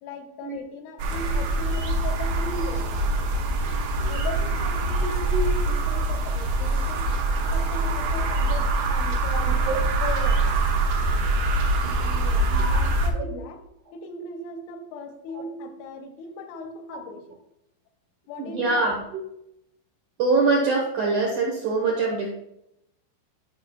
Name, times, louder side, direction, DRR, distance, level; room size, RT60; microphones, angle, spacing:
voice 1, 0.0-3.1 4.1-5.3 5.6-7.2 7.5-10.5 12.0-13.7 13.9-17.4 18.3-18.8, left 2 dB, 85° left, 5 dB, 3.2 m, -38 dB
sound 1, 1.0-13.1, right 2 dB, 75° right, 2.9 m, -24 dB
voice 2, 5.0-5.5 9.3-9.7 12.5-12.8 13.1-13.2 15.3-15.4 16.9-17.0 18.4-19.2 20.2-22.3, right 3 dB, 90° right, -1 dB, 1.7 m, -25 dB
12.5 x 5.7 x 2.3 m, 0.81 s
omnidirectional pair, 5.4 m